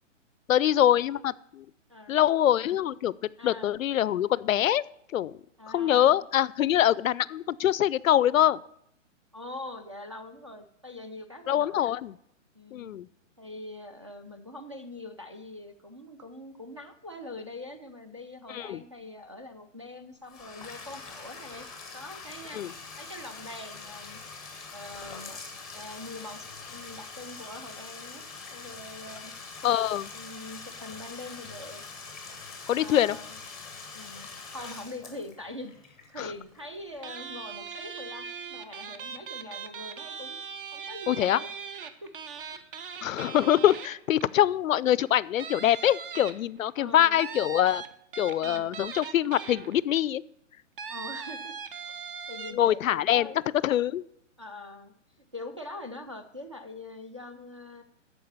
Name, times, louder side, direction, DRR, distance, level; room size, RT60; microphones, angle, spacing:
voice 1, 0.5-1.6 2.1-4.8 5.1-5.4 5.7-8.6 11.5-12.1 12.7-13.1 18.5-18.8 22.5-22.7 29.6-30.1 32.7-33.2 36.2-36.3 41.1-41.4 43.0-47.8 48.2-50.2 52.5-53.3 53.6-54.0, left 11 dB, 85° left, 21 dB, 0.5 m, -24 dB
voice 2, 3.4-3.8 5.6-6.2 9.3-12.0 12.6-12.9 13.4-21.7 21.9-22.6 23.0-24.2 24.7-25.4 25.7-28.3 28.5-29.3 30.1-31.8 32.7-33.4 33.9-40.4 40.7-41.5 42.0-42.1 42.5-42.6 46.8-47.2 48.4-48.8 50.9-51.5 51.8-53.4 54.4-54.9 55.3-57.8, left 2 dB, 25° right, 8 dB, 0.3 m, -43 dB
Bathtub (filling or washing), 20.2-37.0, left 4 dB, ahead, 0.7 m, -44 dB
sound 1, 37.0-44.4 44.9-45.0 45.4-46.7 47.2-50.0 50.8-52.5, right 6 dB, 45° right, 0.8 m, -40 dB
13.0 x 4.7 x 7.0 m, 0.72 s
hypercardioid pair, 155°, 39 cm